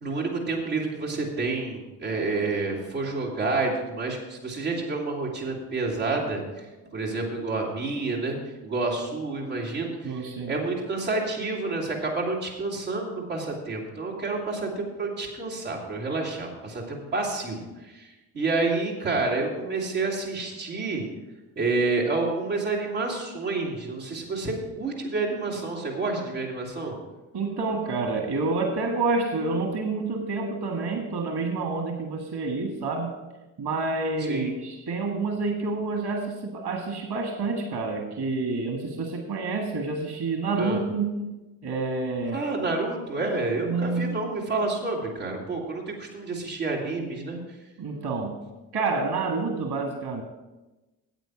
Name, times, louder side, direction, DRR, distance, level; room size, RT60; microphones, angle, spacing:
voice 1, 0.0-6.7 6.9-8.4 8.6-21.0 21.6-27.0 34.2-34.6 40.6-40.8 42.3-47.4, right 3 dB, 85° right, -6 dB, 2.4 m, -29 dB
voice 2, 10.0-10.6 27.3-33.1 33.6-41.4 41.6-42.5 43.6-44.3 47.8-48.4 48.7-50.2, right 3 dB, 55° right, 3 dB, 1.7 m, -28 dB
9.1 x 8.4 x 6.0 m, 1.1 s
hypercardioid pair, 40°, 48 cm